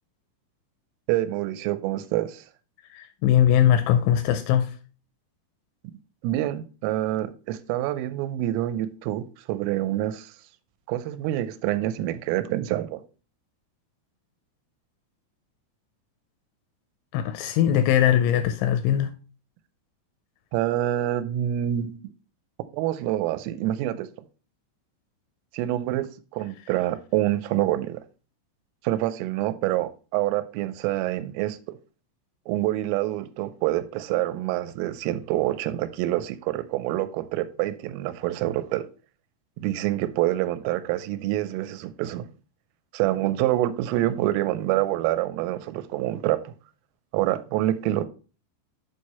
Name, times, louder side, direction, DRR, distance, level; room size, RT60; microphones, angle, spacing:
voice 1, 1.1-2.4 6.2-10.3 10.9-13.0 20.5-22.0 22.7-24.1 25.5-26.1 26.3-28.0 28.8-31.8 32.5-38.8 39.6-42.2 42.9-46.5 47.1-48.1, right 14 dB, 85° right, 3.2 m, -26 dB
voice 2, 2.9-4.7 17.1-19.1, left 10 dB, 85° left, 2.8 m, -21 dB
7.9 x 4.7 x 4.2 m
omnidirectional pair, 5.8 m